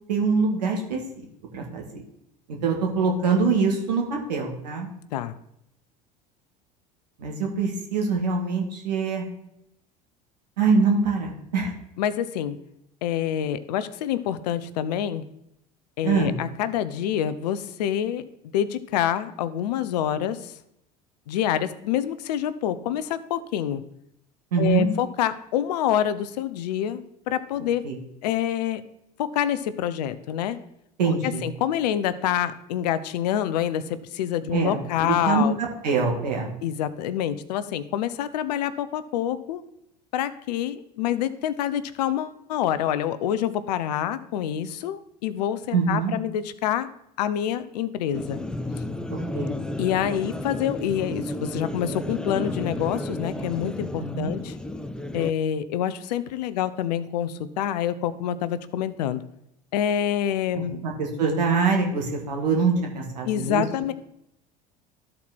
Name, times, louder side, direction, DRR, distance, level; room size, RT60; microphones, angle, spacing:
voice 1, 0.1-1.3 1.5-1.8 2.6-4.9 7.2-9.2 10.6-11.7 16.0-16.4 24.5-24.9 27.8-28.0 31.0-31.4 34.5-36.5 45.7-46.1 49.1-49.5 54.1-54.3 60.8-63.6, right 4 dB, 85° right, 0 dB, 1.8 m, -24 dB
voice 2, 12.0-12.6 13.0-15.2 16.0-18.2 18.5-20.5 21.3-23.8 24.6-27.9 28.2-28.8 29.2-30.6 31.1-35.6 36.6-39.6 40.1-46.9 47.2-48.4 49.8-54.6 55.1-59.2 59.7-60.8 63.3-63.9, left 10 dB, 75° left, 14 dB, 0.6 m, -27 dB
sound 1, 48.1-55.3, left 1 dB, 5° left, 0.5 m, -32 dB
13.0 x 4.4 x 4.2 m, 0.79 s
hypercardioid pair, 80°, 21 cm